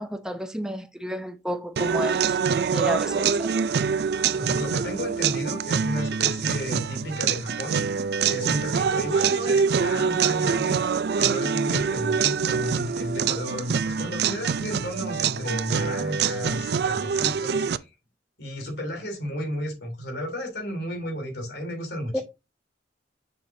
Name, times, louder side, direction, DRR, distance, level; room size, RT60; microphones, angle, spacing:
voice 1, 0.0-2.4 2.7-3.7 22.1-22.2, equal, 5° right, 0.7 m, -31 dB
sound 1, 1.8-17.8, right 6 dB, 65° right, 0.4 m, -25 dB
voice 2, 4.4-7.8 8.3-10.8 11.2-17.9 18.4-22.2, equal, 70° left, 3.4 m, -32 dB
7.1 x 6.8 x 2.7 m
head